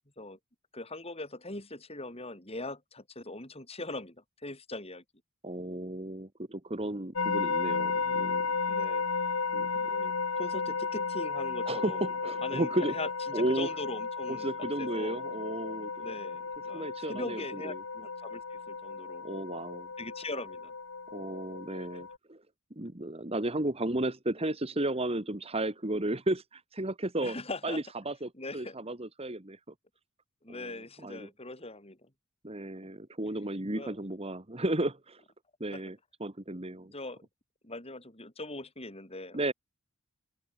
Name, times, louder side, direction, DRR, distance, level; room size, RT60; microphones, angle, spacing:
voice 1, 0.7-4.2 4.4-5.0 8.7-9.1 9.7-12.0 12.4-14.5 14.8-15.2 16.0-19.3 20.0-20.7 21.7-22.0 27.2-27.8 28.4-28.8 30.4-32.1 33.8-33.9 35.7-35.8 36.9-37.2 37.6-39.5, left 2 dB, 25° left, 6.8 m, -41 dB
voice 2, 5.4-8.6 9.5-9.9 11.7-13.0 13.3-13.7 14.3-16.1 16.7-17.8 19.2-19.9 21.1-22.4 22.7-27.4 27.6-29.7 30.5-30.7 31.0-31.3 32.4-35.2 35.6-36.9 39.3-39.5, right 1 dB, 25° right, 1.9 m, -34 dB
sound 1, 7.2-22.2, left 4 dB, 80° left, 1.5 m, -34 dB
open air
head